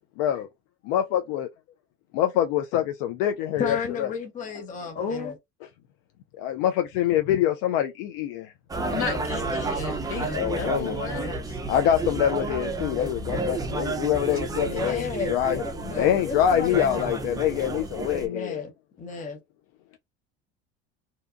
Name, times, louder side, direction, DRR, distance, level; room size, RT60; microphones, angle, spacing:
voice 1, 0.9-1.5 2.1-4.1 6.4-8.5 10.4-11.0 11.7-15.6 16.0-18.6, left 10 dB, 75° left, 0.5 m, -25 dB
voice 2, 3.6-5.3 14.5-17.2 18.2-18.7 19.0-19.4, left 5 dB, 25° left, 0.7 m, -33 dB
voice 3, 4.9-5.4 8.9-11.6, left 5 dB, 45° left, 1.4 m, -33 dB
sound 1, 8.7-18.3, right 3 dB, 15° right, 0.4 m, -31 dB
2.8 x 2.2 x 2.4 m
supercardioid pair, 95°, 30 cm